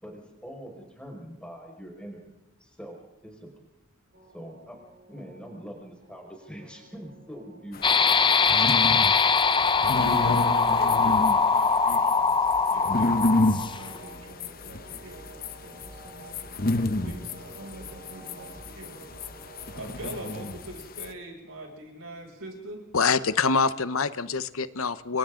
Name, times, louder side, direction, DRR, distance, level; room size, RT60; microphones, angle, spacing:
voice 1, 0.0-2.3 2.6-3.0 3.2-3.5 4.3-4.8 5.1-7.8, equal, 5° left, 0 dB, 5.3 m, -43 dB
sound 1, 4.1-20.5, right 2 dB, 40° right, 6.4 m, -51 dB
sound 2, 7.7-21.1, left 2 dB, 40° left, 1.0 m, -30 dB
sound 3, 7.8-14.0, left 5 dB, 20° left, 0.6 m, -22 dB
voice 2, 10.0-16.6 17.0-19.2 19.7-22.8, right 1 dB, 70° right, 1 dB, 6.9 m, -43 dB
voice 3, 22.9-25.2, left 5 dB, 70° left, 13 dB, 0.9 m, -25 dB
29.5 x 24.0 x 3.8 m, 0.92 s
head